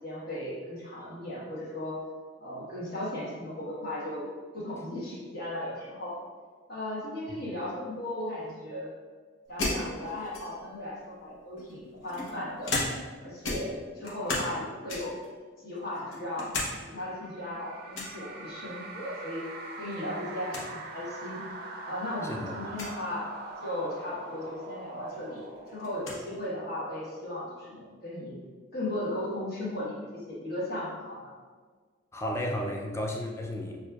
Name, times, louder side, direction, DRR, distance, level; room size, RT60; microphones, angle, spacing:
voice 1, 0.0-2.0 2.4-4.3 4.5-6.1 6.7-8.9 9.5-12.8 13.2-15.1 15.6-16.5 16.9-19.4 19.8-21.4 21.9-23.3 23.6-28.4 28.7-31.3, left 1 dB, 50° left, -7 dB, 1.2 m, -36 dB
sound 1, 9.6-10.8 11.6-13.2 13.4-14.6 14.9-15.3 15.8-16.7 17.1-17.2 17.9-18.2 19.6-20.0 20.2-20.3 20.5-20.7 21.5-21.6 22.7-23.0 24.6-24.7 25.1-26.2, left 2 dB, 90° left, 0.9 m, -34 dB
sound 2, 17.0-26.7, right 2 dB, 50° right, 0.4 m, -43 dB
voice 2, 22.2-22.6 32.1-33.8, left 1 dB, 15° left, 1 dB, 0.3 m, -33 dB
6.1 x 2.5 x 2.3 m, 1.5 s
head